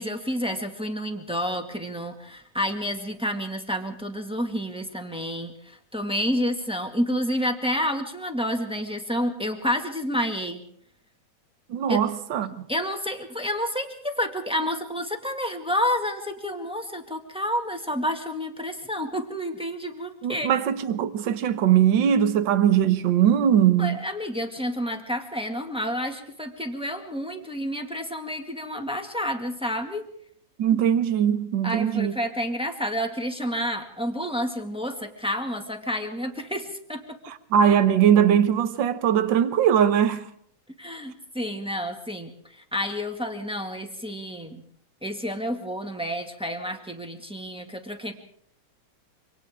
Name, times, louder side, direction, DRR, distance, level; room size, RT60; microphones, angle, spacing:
voice 1, 0.0-10.6 11.9-12.0 12.4-20.5 23.8-30.0 30.7-30.8 31.6-37.2 40.8-44.6 45.0-48.1, equal, ahead, 1.3 m, -29 dB
voice 2, 11.7-12.6 20.2-24.0 30.6-32.1 37.5-40.2, right 9 dB, 60° right, 1.2 m, -20 dB
27.0 x 25.5 x 3.7 m
omnidirectional pair, 3.5 m